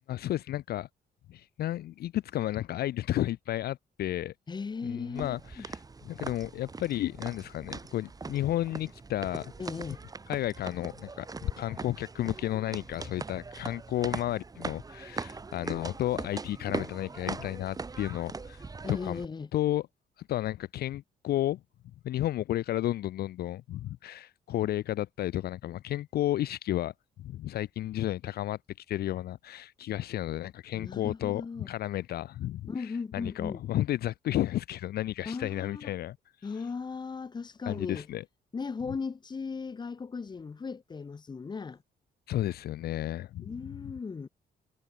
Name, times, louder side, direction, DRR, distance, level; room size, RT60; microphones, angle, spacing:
voice 1, 0.1-0.9 1.3-4.3 4.8-5.8 6.0-9.5 10.3-19.2 19.5-19.9 20.3-21.6 22.0-26.9 27.2-36.2 37.7-38.2 42.3-43.5, left 13 dB, 65° left, 0.4 m, -32 dB
voice 2, 4.5-5.7 9.6-10.0 18.8-19.5 30.7-31.7 32.7-33.6 35.2-35.9 36.4-38.1 38.5-41.8 43.4-44.3, left 5 dB, 25° left, 1.1 m, -37 dB
sound 1, 5.1-19.2, right 4 dB, 20° right, 1.5 m, -41 dB
cardioid pair, 145°, 17 cm